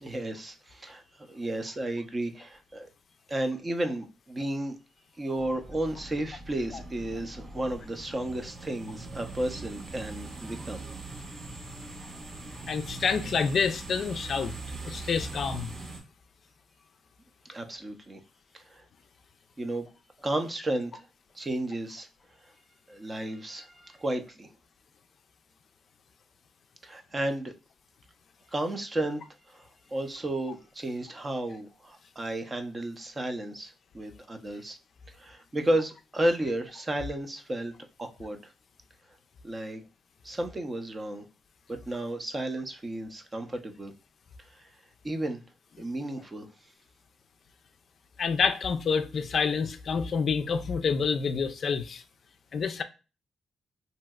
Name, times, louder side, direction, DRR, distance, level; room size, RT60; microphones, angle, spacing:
voice 1, 0.0-2.9 3.3-4.8 5.2-10.8 17.5-18.2 18.5-18.8 19.6-19.9 20.2-21.0 21.3-22.1 22.9-24.5 26.8-27.5 28.5-34.8 35.1-37.7 38.0-38.5 39.4-39.8 40.2-41.3 41.7-43.9 44.5-44.7 45.0-45.4 45.8-46.5, right 1 dB, 25° right, 0.5 m, -33 dB
sound 1, 5.4-16.0, right 3 dB, 60° right, 1.4 m, -42 dB
voice 2, 12.7-14.5 14.8-15.7 48.2-52.0 52.5-52.8, left 5 dB, 55° left, 0.4 m, -28 dB
3.0 x 2.7 x 2.2 m
cardioid pair, 100°, 0 cm